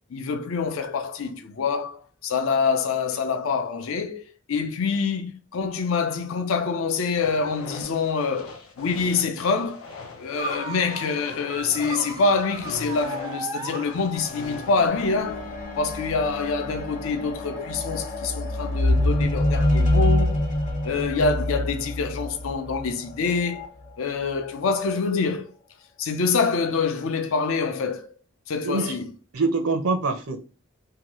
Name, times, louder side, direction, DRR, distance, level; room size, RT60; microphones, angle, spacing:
voice 1, 0.1-9.8 10.2-15.5 15.8-20.5 20.8-23.7 24.0-25.5 26.0-28.1 28.5-29.1, left 4 dB, 70° left, 0.5 m, -26 dB
sound 1, 7.1-14.9, left 3 dB, 90° left, 0.8 m, -41 dB
sound 2, 10.4-14.5, right 3 dB, 20° right, 0.3 m, -36 dB
sound 3, 14.1-23.7 24.5-24.6, left 1 dB, 35° left, 0.8 m, -26 dB
voice 2, 28.6-29.0 29.3-30.4, right 3 dB, 85° right, 0.6 m, -24 dB
2.8 x 2.3 x 2.9 m
head